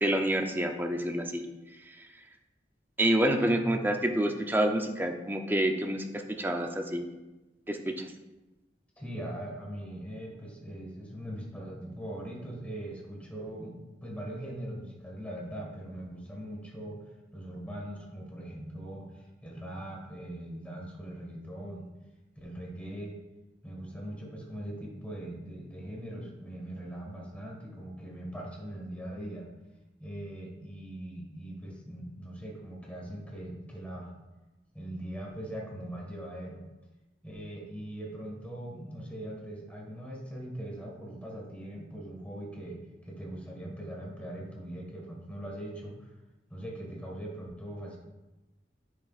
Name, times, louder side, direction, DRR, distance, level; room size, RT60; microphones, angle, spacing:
voice 1, 0.0-1.4 1.9-2.1 3.0-7.0 7.7-8.1, right 1 dB, 10° right, 4 dB, 0.6 m, -28 dB
voice 2, 9.0-13.7 14.0-17.0 17.3-21.9 22.4-23.2 23.6-29.5 30.0-34.1 34.7-36.6 37.2-46.1 46.5-48.0, right 1 dB, 10° left, -2 dB, 1.7 m, -41 dB
9.7 x 6.9 x 2.5 m, 1.1 s
head